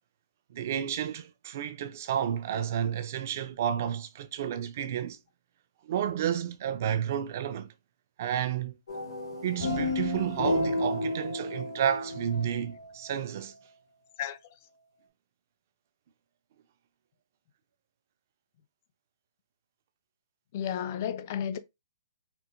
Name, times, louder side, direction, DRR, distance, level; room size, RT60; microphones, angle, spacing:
voice 1, 0.5-5.2 5.8-7.7 8.2-8.8 9.4-13.5, right 9 dB, 35° right, 0.4 m, -31 dB
sound 1, 8.9-13.2, left 2 dB, 85° left, 1.2 m, -32 dB
voice 2, 20.5-21.6, left 9 dB, 30° left, 0.3 m, -32 dB
4.4 x 2.0 x 2.5 m
hypercardioid pair, 170°, 2 cm